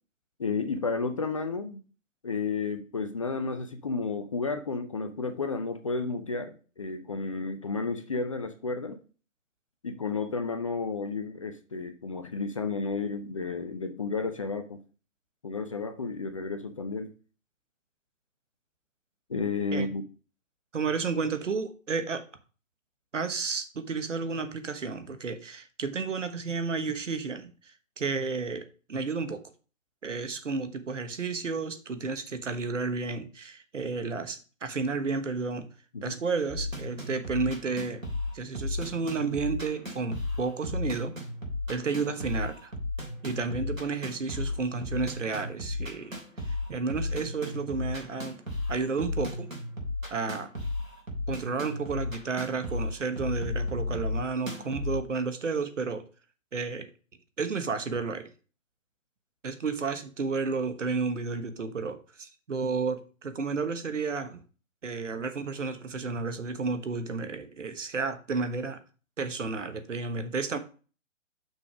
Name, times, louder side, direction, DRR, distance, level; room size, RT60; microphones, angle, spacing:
voice 1, 0.4-1.8 2.2-9.0 9.8-14.8 15.4-17.1 19.3-20.0 35.9-36.2, left 4 dB, 25° left, 0.5 m, -32 dB
voice 2, 20.7-22.2 23.1-29.4 30.0-35.7 36.0-38.0 38.3-41.1 41.7-42.7 43.2-46.2 46.5-48.4 48.7-49.5 50.1-50.5 51.3-56.1 56.5-56.9 57.4-58.3 59.4-64.4 64.8-68.8 69.2-70.6, right 4 dB, 65° right, 1.2 m, -32 dB
sound 1, 36.5-55.0, left 2 dB, 85° right, 3.1 m, -34 dB
6.2 x 5.1 x 4.9 m
figure-of-eight pair, 130°, 39 cm